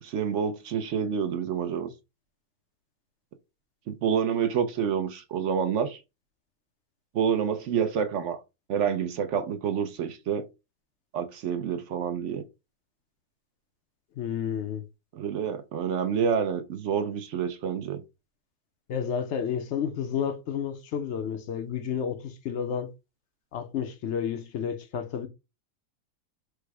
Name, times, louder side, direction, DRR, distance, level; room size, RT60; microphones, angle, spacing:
voice 1, 0.0-1.9 3.9-6.0 7.1-8.4 8.7-10.5 11.1-12.4 15.1-18.0, right 7 dB, 65° right, 0.8 m, -28 dB
voice 2, 14.2-14.8 18.9-22.9 23.5-25.3, left 8 dB, 65° left, 0.7 m, -31 dB
4.8 x 2.1 x 4.6 m
omnidirectional pair, 1.8 m